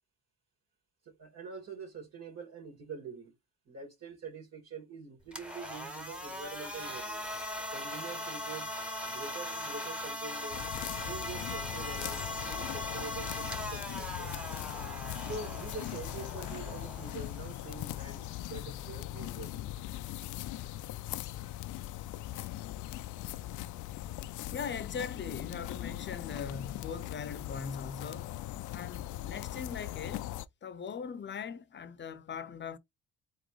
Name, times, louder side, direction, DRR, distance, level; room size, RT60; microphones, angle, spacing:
voice 1, 1.1-3.3 3.7-7.2 7.7-8.7 9.1-10.7 11.0-14.3 15.2-19.7, right 4 dB, 60° right, 2.3 m, -45 dB
sound 1, 5.2-19.3, left 1 dB, 5° right, 1.1 m, -40 dB
sound 2, 10.5-30.5, left 15 dB, 80° left, 0.5 m, -40 dB
voice 2, 24.5-28.3 28.7-30.4 30.6-32.8, left 6 dB, 40° left, 0.7 m, -40 dB
4.3 x 3.7 x 3.2 m
cardioid pair, 90°, 30 cm